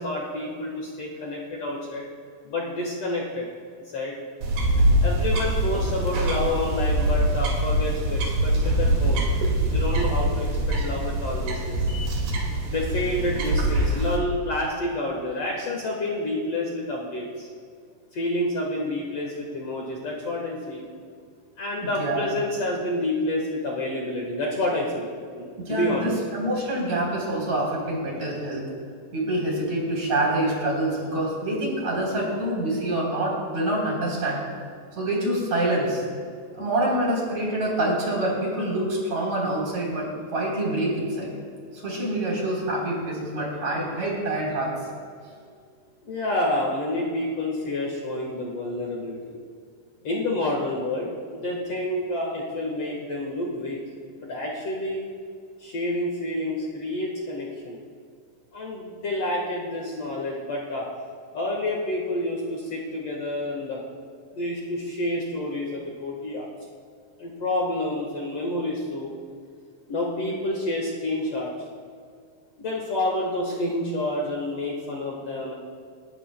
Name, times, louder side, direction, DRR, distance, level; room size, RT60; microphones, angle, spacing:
voice 1, 0.0-2.1 2.4-3.5 3.9-4.2 5.0-9.3 9.7-11.8 12.7-17.5 18.1-20.9 21.6-26.2 46.0-49.4 50.0-53.8 54.2-55.1 55.6-57.8 58.5-60.9 61.3-63.8 64.3-66.5 67.2-69.1 69.9-71.5 72.6-75.5, left 1 dB, 55° left, -2 dB, 2.1 m, -29 dB
sound 1, 4.4-14.2, right 1 dB, 80° right, 3.8 m, -23 dB
voice 2, 21.8-22.3 25.7-28.7 29.1-34.4 35.0-36.0 36.5-41.3 41.7-44.7, right 1 dB, 50° right, -3 dB, 4.7 m, -26 dB
29.5 x 12.0 x 2.2 m, 2.1 s
omnidirectional pair, 4.0 m